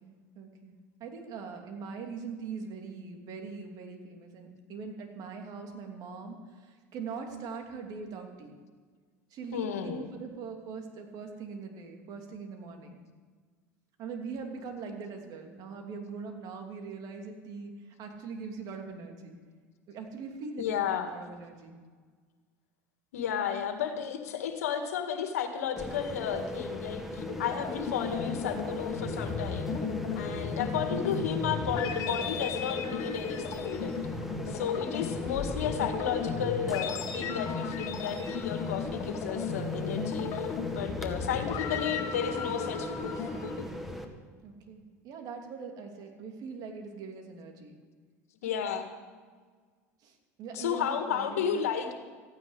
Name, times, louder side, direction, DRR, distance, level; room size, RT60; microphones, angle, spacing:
voice 1, 0.0-8.6 9.3-13.0 14.0-19.4 19.9-20.8 21.1-21.7 44.4-47.8 50.0-51.5, right 5 dB, 55° right, 3 dB, 2.9 m, -42 dB
voice 2, 9.5-10.1 20.6-21.2 23.1-29.7 30.1-34.0 34.5-43.3 48.4-48.9 50.5-51.9, left 8 dB, 85° left, 6 dB, 1.8 m, -33 dB
sound 1, 25.8-44.0, equal, 5° right, 1.9 m, -39 dB
sound 2, 27.2-43.6, left 6 dB, 50° left, 2.0 m, -35 dB
15.0 x 9.8 x 8.2 m, 1.5 s
hypercardioid pair, 85°, 8 cm